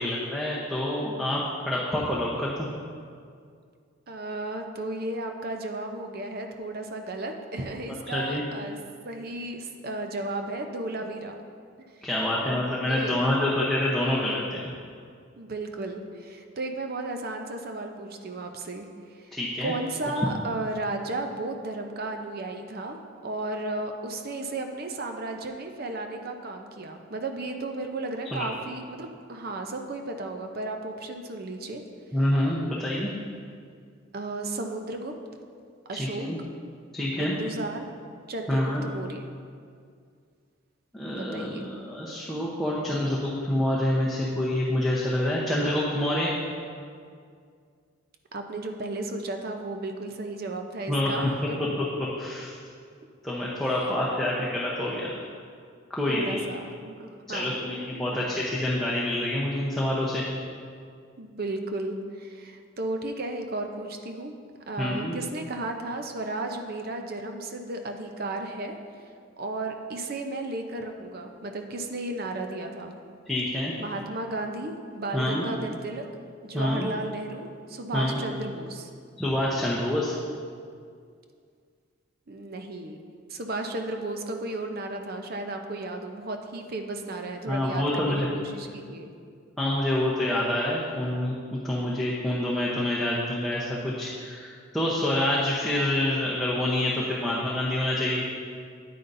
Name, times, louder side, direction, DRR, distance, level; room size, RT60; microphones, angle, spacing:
voice 1, 0.0-2.7 8.1-8.4 12.0-14.6 19.3-19.7 28.2-28.5 32.1-33.1 35.9-36.4 36.9-37.3 38.5-38.8 40.9-46.3 50.9-51.5 51.8-52.5 53.2-55.2 55.9-56.4 57.3-60.2 64.8-65.2 73.3-73.7 75.1-75.5 76.5-76.9 77.9-78.2 79.2-80.1 87.5-88.3 89.6-98.2, left 1 dB, ahead, -7 dB, 0.8 m, -27 dB
voice 2, 4.1-8.8 9.0-11.4 12.4-12.6 12.9-13.3 15.4-19.4 19.6-31.8 34.1-35.1 35.9-36.3 37.2-37.9 38.3-39.3 41.2-41.7 48.3-51.6 53.9-54.0 56.0-57.6 58.1-58.2 61.2-68.8 69.4-72.9 73.8-76.0 76.4-78.9 82.3-83.0 83.3-89.1, right 2 dB, 45° right, 4 dB, 0.6 m, -34 dB
9.4 x 9.4 x 2.6 m, 2.2 s
head